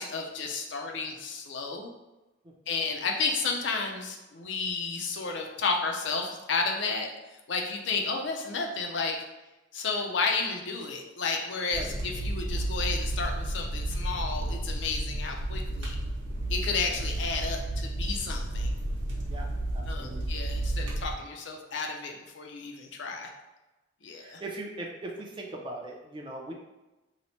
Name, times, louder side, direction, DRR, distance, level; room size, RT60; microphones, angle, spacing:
voice 1, 0.0-1.9 2.7-7.1 7.5-9.2 9.7-16.0 16.5-18.7 19.9-23.3 24.0-24.4, left 4 dB, 65° left, 2 dB, 0.5 m, -32 dB
sound 1, 11.7-21.1, right 1 dB, 75° right, 0.8 m, -32 dB
voice 2, 19.7-20.2 24.1-26.5, right 1 dB, 25° right, 0 dB, 0.4 m, -40 dB
2.9 x 2.0 x 4.1 m, 1.0 s
head